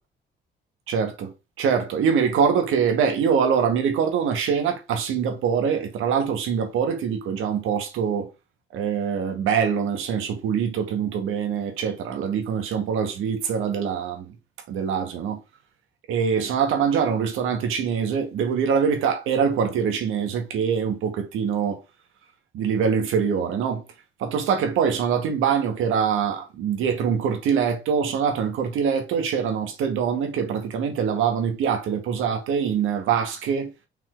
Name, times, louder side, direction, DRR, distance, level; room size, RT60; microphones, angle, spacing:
voice 1, 0.9-1.3 1.6-8.3 8.7-14.3 14.7-15.4 16.1-21.8 22.5-23.8 24.2-33.7, right 7 dB, 90° right, 1.8 m, -24 dB
5.9 x 4.0 x 4.5 m
cardioid pair, 90°, 20 cm